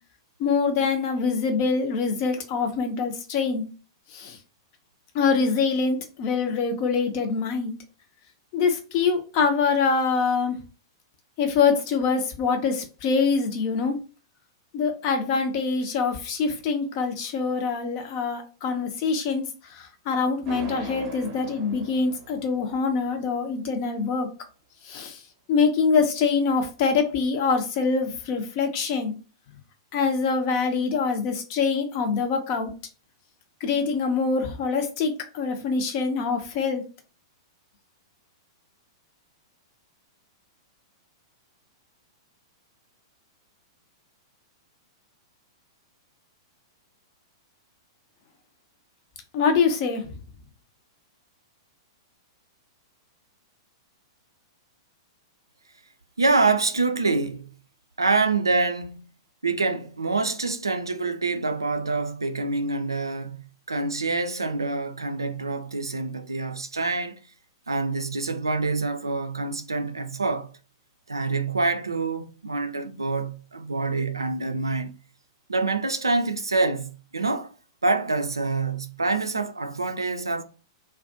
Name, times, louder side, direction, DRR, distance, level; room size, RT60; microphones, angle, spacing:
voice 1, 0.4-3.7 4.1-4.4 5.1-7.8 8.5-10.6 11.4-14.0 14.7-24.3 24.8-25.2 25.5-29.2 29.9-32.7 33.6-36.9 49.3-50.1, left 5 dB, 40° left, 0.6 m, -24 dB
sound 1, 20.5-23.4, right 4 dB, 35° right, 0.6 m, -41 dB
voice 2, 56.2-57.5 58.0-59.0 59.4-63.4 63.7-67.2 67.7-70.5 71.1-74.9 75.5-77.5 77.8-80.4, right 3 dB, 80° right, 0.3 m, -26 dB
2.4 x 2.2 x 2.5 m
figure-of-eight pair, 105°, 2 cm